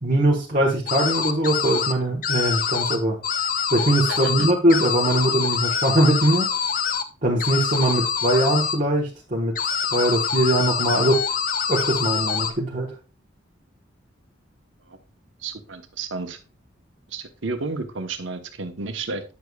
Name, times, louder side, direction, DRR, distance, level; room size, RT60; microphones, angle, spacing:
voice 1, 0.0-3.2 3.7-6.5 7.2-11.2 11.7-12.9, right 1 dB, 40° right, -3 dB, 1.1 m, -21 dB
sound 1, 0.9-1.9 2.2-3.0 3.2-7.0 7.4-8.8 9.6-12.5, left 7 dB, 45° left, 0.5 m, -25 dB
voice 2, 4.1-4.5 14.9-15.0 15.4-16.4 17.1-19.2, right 3 dB, 70° right, 6 dB, 0.9 m, -32 dB
9.4 x 6.7 x 2.3 m, 0.33 s
head